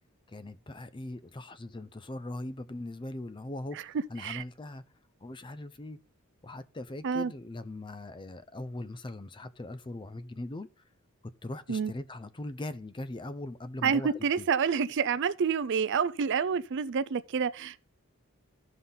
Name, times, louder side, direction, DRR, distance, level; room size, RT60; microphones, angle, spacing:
voice 1, 0.3-4.8 5.2-6.0 6.4-10.7 11.4-14.5, left 1 dB, 20° left, 0.5 m, -40 dB
voice 2, 13.8-17.9, right 6 dB, 55° right, 0.4 m, -28 dB
14.0 x 5.6 x 3.8 m
head